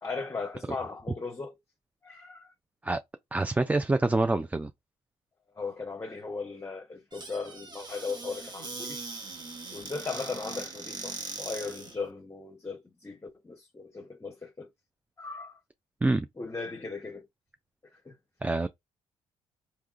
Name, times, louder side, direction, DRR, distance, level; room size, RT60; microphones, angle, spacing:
voice 1, 0.0-1.5 2.0-2.5 5.6-9.0 9.7-14.7 15.2-15.5 16.4-17.2 18.1-18.2, left 4 dB, 20° left, 0.7 m, -37 dB
voice 2, 3.3-4.7 16.0-16.3 18.4-18.7, right 2 dB, 10° right, 0.4 m, -26 dB
Squeak / Cupboard open or close, 7.1-12.0, right 3 dB, 35° right, 1.0 m, -40 dB
3.6 x 2.9 x 2.4 m
supercardioid pair, 70°, 13 cm